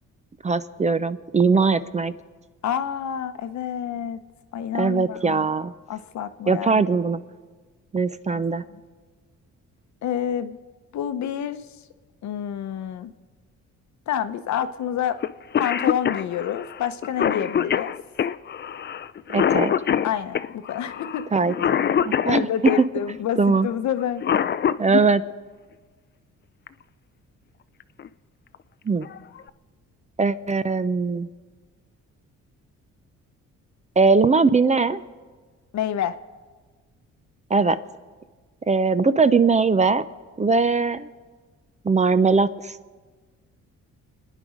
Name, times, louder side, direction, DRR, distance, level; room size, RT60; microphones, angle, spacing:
voice 1, 0.4-2.1 4.7-5.7 6.5-7.2 7.9-8.6 19.3-19.7 21.3-21.5 22.1-22.7 23.4-23.7 24.8-25.2 28.9-29.1 30.2-31.3 34.0-35.0 37.5-37.8 38.7-40.0 40.4-41.1 41.8-42.8, right 4 dB, 25° right, 13 dB, 0.6 m, -20 dB
voice 2, 2.6-4.2 4.5-5.5 5.9-7.0 8.3-8.4 8.7-8.8 10.0-10.6 10.9-11.6 12.2-13.1 14.1-15.2 15.6-17.9 20.0-21.2 22.2-24.2 35.7-36.2, left 9 dB, 65° left, 11 dB, 0.9 m, -28 dB
Cough, 15.2-15.3 15.5-22.9 24.0-25.0 26.7-26.8 27.8-28.1 28.5-28.6 29.0-29.5, left 8 dB, 35° left, 0.5 m, -24 dB
28.0 x 10.0 x 5.1 m, 1.4 s
cardioid pair, 90°, 30 cm